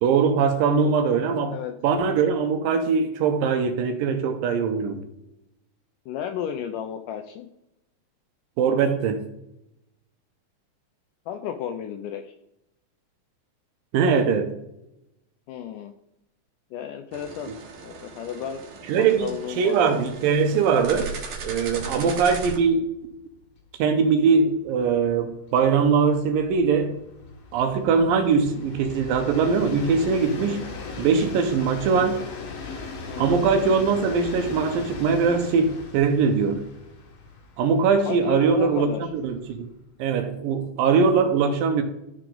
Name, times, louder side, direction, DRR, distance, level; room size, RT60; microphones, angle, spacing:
voice 1, 0.0-1.6 1.8-5.0 8.6-9.2 13.9-14.5 18.9-19.3 19.6-21.1 21.4-22.9 23.8-27.0 27.5-30.6 31.0-32.2 33.2-36.6 37.6-39.7 40.0-41.8, right 5 dB, 75° right, 7 dB, 2.4 m, -21 dB
voice 2, 6.1-7.5 11.3-12.3 15.5-15.9 16.7-17.5 17.8-18.7 19.0-19.8 21.9-22.1 33.1-33.4 38.1-39.0, left 9 dB, 85° left, 6 dB, 1.9 m, -33 dB
sound 1, 17.1-22.6, right 4 dB, 60° right, 2.3 m, -38 dB
Train, 21.6-21.8 22.1-22.2 22.5-39.9, left 4 dB, 60° left, 1.9 m, -39 dB
13.0 x 4.8 x 3.8 m, 0.85 s
omnidirectional pair, 4.2 m